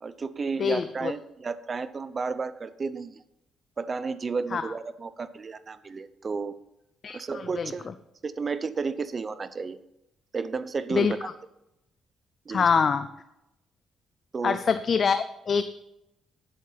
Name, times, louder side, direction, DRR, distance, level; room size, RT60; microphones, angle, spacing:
voice 1, 0.0-3.2 3.8-6.6 7.1-7.9 8.2-9.8 10.3-11.3 12.5-12.7 14.3-14.6, right 4 dB, 35° right, 14 dB, 0.7 m, -32 dB
voice 2, 0.6-1.1 4.5-4.7 7.0-7.7 10.9-11.1 12.5-13.1 14.4-15.6, left 6 dB, 45° left, 11 dB, 0.5 m, -25 dB
10.0 x 7.9 x 5.6 m, 0.87 s
cardioid pair, 90°, 0 cm